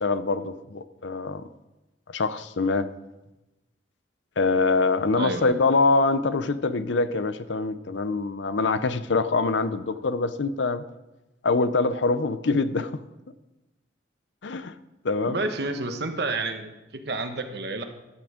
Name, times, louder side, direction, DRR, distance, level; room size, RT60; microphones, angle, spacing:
voice 1, 0.0-1.4 2.1-2.9 4.4-10.8 11.4-13.0 14.4-14.7 15.0-15.4, left 3 dB, 75° left, 13 dB, 0.6 m, -24 dB
voice 2, 5.2-5.6 15.3-17.8, right 3 dB, 60° right, 6 dB, 1.2 m, -30 dB
12.5 x 8.6 x 5.0 m, 1.0 s
head